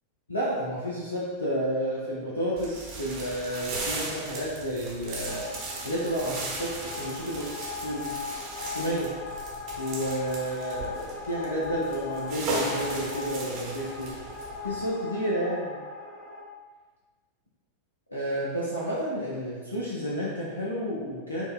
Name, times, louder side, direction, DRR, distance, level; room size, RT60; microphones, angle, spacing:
voice 1, 0.3-5.5 5.8-8.1 8.7-9.2 9.8-14.2 14.6-15.8 18.1-21.4, equal, 80° left, -7 dB, 0.5 m, -31 dB
sound 1, 2.6-14.8, right 2 dB, 40° right, 0.7 m, -37 dB
sound 2, 5.3-16.4, left 4 dB, 15° left, 0.6 m, -39 dB
4.4 x 2.1 x 2.3 m, 1.4 s
figure-of-eight pair, 90°, 0 cm